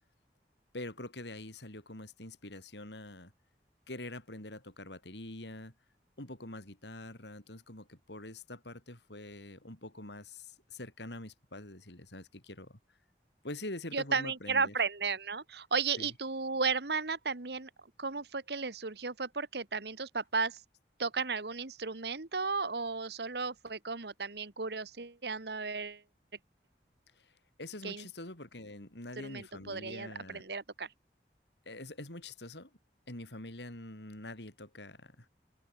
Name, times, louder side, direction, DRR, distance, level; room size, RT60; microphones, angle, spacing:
voice 1, 0.7-3.3 3.9-5.7 6.2-12.8 13.4-14.7 16.0-16.1 27.2-27.3 27.6-30.4 31.7-32.7 33.1-35.3, left 1 dB, 85° left, 5.6 m, -45 dB
voice 2, 13.9-17.7 18.0-20.6 21.0-26.0 27.8-28.1 29.2-30.9, right 4 dB, 70° right, 1.5 m, -34 dB
head